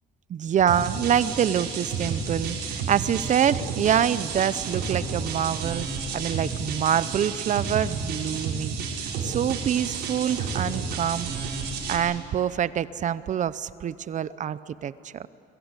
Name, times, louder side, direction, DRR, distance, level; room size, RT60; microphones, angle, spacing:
voice 1, 0.3-5.9 6.1-11.3 11.9-15.3, right 9 dB, 45° right, 16 dB, 0.8 m, -26 dB
sound 1, 0.7-12.0, right 5 dB, 75° right, 5.7 m, -31 dB
29.0 x 23.0 x 8.3 m, 2.6 s
cardioid pair, 110°, 17 cm